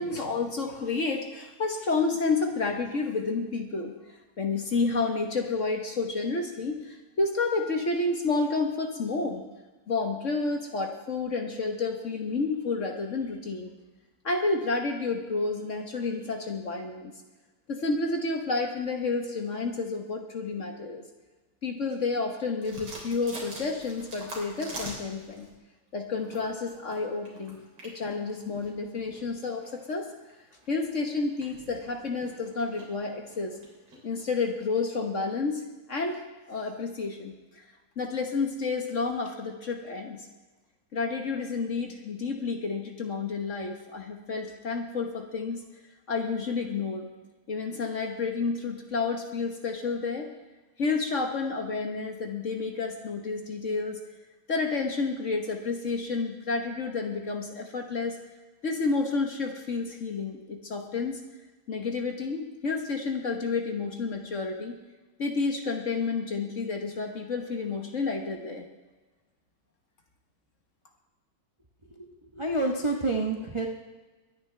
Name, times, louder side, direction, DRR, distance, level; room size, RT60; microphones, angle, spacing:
voice 1, 0.0-3.9 4.4-9.4 9.9-13.7 14.2-17.1 17.7-21.0 21.6-25.5 25.9-27.6 27.8-30.1 30.7-33.6 34.0-36.2 36.5-37.6 38.0-40.2 40.9-45.6 46.1-47.1 47.5-50.3 50.8-54.0 54.5-58.2 58.6-61.2 61.7-64.7 65.2-68.6, left 4 dB, 45° left, 3 dB, 1.3 m, -30 dB
sound 1, 22.6-25.6 26.1-34.7, right 1 dB, 80° right, 4.2 m, -46 dB
voice 2, 71.9-73.7, right 2 dB, 25° right, 1 dB, 0.6 m, -29 dB
23.0 x 10.0 x 3.3 m, 1.2 s
omnidirectional pair, 2.3 m